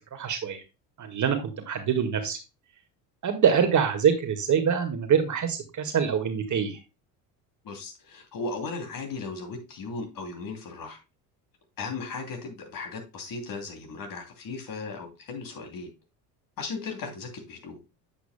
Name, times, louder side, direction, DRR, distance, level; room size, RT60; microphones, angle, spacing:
voice 1, 0.1-0.6 1.0-2.4 3.2-6.8, right 7 dB, 35° right, 6 dB, 1.9 m, -25 dB
voice 2, 7.6-11.0 11.8-15.9 16.6-17.8, left 4 dB, 45° left, 4 dB, 3.0 m, -36 dB
8.6 x 8.0 x 2.2 m, 0.27 s
hypercardioid pair, 65°, 48 cm